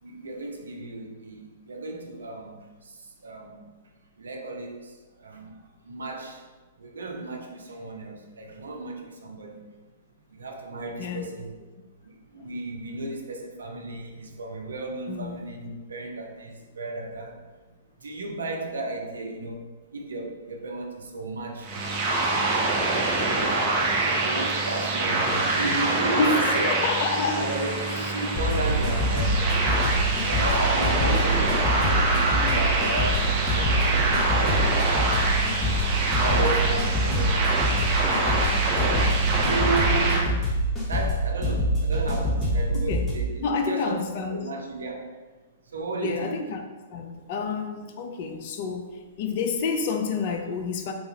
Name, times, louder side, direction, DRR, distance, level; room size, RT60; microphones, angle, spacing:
voice 1, 0.0-3.7 4.2-5.6 5.8-6.5 6.8-9.7 10.3-11.5 12.0-17.5 18.0-26.7 27.3-29.9 30.2-31.7 32.1-35.5 36.2-38.6 39.1-39.2 39.4-40.6 40.9-44.0 44.3-45.2 45.6-46.4, right 3 dB, 75° right, 2 dB, 0.5 m, -34 dB
voice 2, 11.0-11.3 15.1-15.4 26.2-27.5 31.0-31.4 42.7-43.1 43.4-44.4 46.0-46.6 46.9-50.9, left 4 dB, 50° left, 5 dB, 0.4 m, -29 dB
sound 1, 21.6-40.2, right 2 dB, 30° right, 0.6 m, -25 dB
sound 2, 28.3-43.1, equal, 15° left, 1.0 m, -25 dB
3.8 x 2.4 x 2.9 m, 1.3 s
figure-of-eight pair, 110°, 0 cm